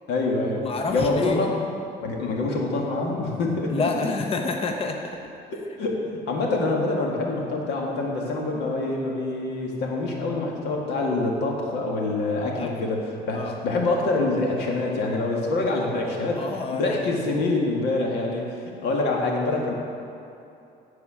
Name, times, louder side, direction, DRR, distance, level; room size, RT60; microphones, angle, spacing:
voice 1, 0.1-0.6 0.9-1.5 2.0-4.1 5.5-18.6 18.8-19.7, left 2 dB, 80° left, -1 dB, 1.9 m, -26 dB
voice 2, 0.6-1.5 3.7-5.2 12.4-12.7 13.3-13.5 16.4-17.2, left 3 dB, 35° left, 3 dB, 0.8 m, -28 dB
14.5 x 4.8 x 6.2 m, 2.8 s
cardioid pair, 110°, 17 cm